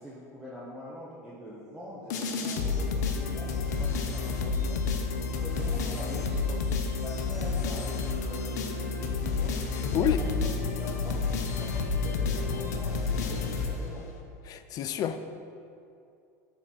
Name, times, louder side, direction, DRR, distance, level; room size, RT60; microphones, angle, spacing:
voice 1, 0.0-4.8 5.1-6.6 7.0-10.5 10.8-14.0, equal, 10° right, -7 dB, 1.3 m, -44 dB
sound 1, 2.1-14.2, left 4 dB, 85° left, 0.8 m, -30 dB
voice 2, 9.7-10.2 14.5-15.2, left 10 dB, 45° left, 10 dB, 0.5 m, -29 dB
6.8 x 3.8 x 6.3 m, 2.5 s
hypercardioid pair, 95°, 9 cm